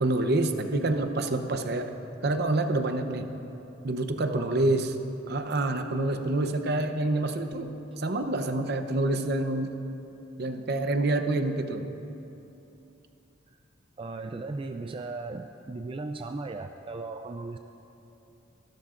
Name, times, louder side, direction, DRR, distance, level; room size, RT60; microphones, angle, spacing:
voice 1, 0.0-1.9 2.2-3.3 3.8-4.9 5.3-7.7 8.0-9.7 10.4-11.8, right 2 dB, 60° right, 7 dB, 0.8 m, -27 dB
voice 2, 4.3-4.8 14.0-17.6, right 3 dB, 30° right, 6 dB, 0.3 m, -37 dB
24.5 x 13.0 x 2.5 m, 2.9 s
head